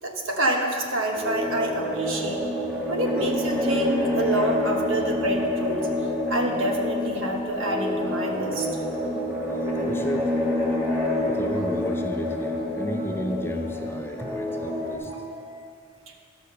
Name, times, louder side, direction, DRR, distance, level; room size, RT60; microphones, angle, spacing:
voice 1, 0.0-2.4 2.9-5.9 6.3-8.7 15.1-15.2 16.1-16.2, right 1 dB, 75° right, 2 dB, 1.2 m, -27 dB
sound 1, 1.1-15.0, left 1 dB, 10° right, 1.6 m, -27 dB
sound 2, 7.5-15.5, right 1 dB, 35° right, 2.1 m, -44 dB
voice 2, 9.8-10.3 11.2-15.2, equal, 10° left, 4 dB, 0.5 m, -33 dB
12.0 x 5.2 x 6.6 m, 2.2 s
head